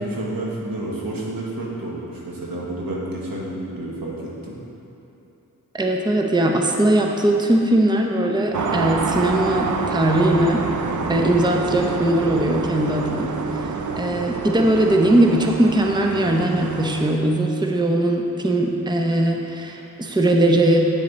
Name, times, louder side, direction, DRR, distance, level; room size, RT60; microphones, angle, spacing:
voice 1, 0.0-4.6, right 1 dB, 80° right, -4 dB, 1.5 m, -30 dB
voice 2, 5.7-10.7 11.1-13.7 14.0-20.9, right 1 dB, 10° right, 1 dB, 0.7 m, -20 dB
sound 1, 8.5-17.1, right 4 dB, 60° right, 0.6 m, -27 dB
8.9 x 6.3 x 4.1 m, 3.0 s
cardioid pair, 55°, 34 cm